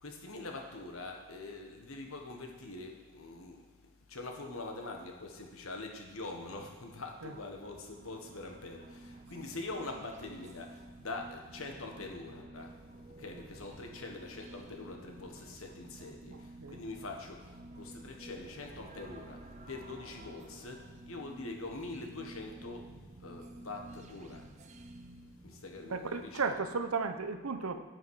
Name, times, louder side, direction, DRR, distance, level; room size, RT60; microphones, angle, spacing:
voice 1, 0.0-3.6 4.1-12.7 13.2-19.4 19.7-22.9 23.2-24.5 25.4-26.5, left 2 dB, 75° left, 2 dB, 1.4 m, -44 dB
sound 1, 7.1-26.0, right 1 dB, 35° right, 0.6 m, -51 dB
voice 2, 16.3-16.8 25.9-27.8, right 4 dB, 80° right, 8 dB, 0.8 m, -35 dB
9.5 x 8.9 x 4.8 m, 1.4 s
head